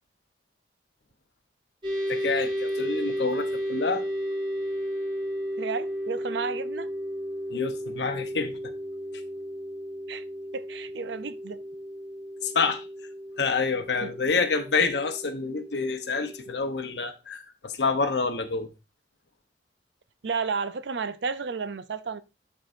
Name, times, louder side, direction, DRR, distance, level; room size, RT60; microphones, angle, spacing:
sound 1, 1.8-16.6, equal, 30° right, 1.9 m, -33 dB
voice 1, 2.1-4.0 7.5-8.6 12.4-12.9 13.4-18.7, left 4 dB, 75° left, 0.8 m, -27 dB
voice 2, 5.6-6.9 10.1-10.2 10.5-11.6 14.0-14.1 20.2-22.2, right 5 dB, 85° right, 0.6 m, -32 dB
12.0 x 4.6 x 2.6 m
head